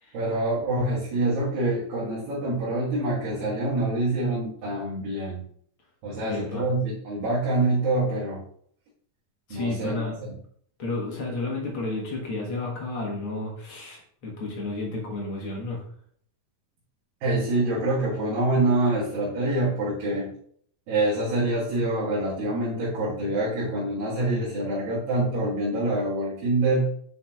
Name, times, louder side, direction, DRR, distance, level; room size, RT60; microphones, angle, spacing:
voice 1, 0.1-5.4 6.0-8.4 9.5-10.1 17.2-20.3 20.9-26.9, right 2 dB, 75° right, -7 dB, 3.3 m, -26 dB
voice 2, 6.2-6.7 9.5-10.3 10.8-15.8, left 2 dB, 50° left, -2 dB, 1.7 m, -32 dB
9.6 x 5.8 x 2.3 m, 0.62 s
omnidirectional pair, 4.1 m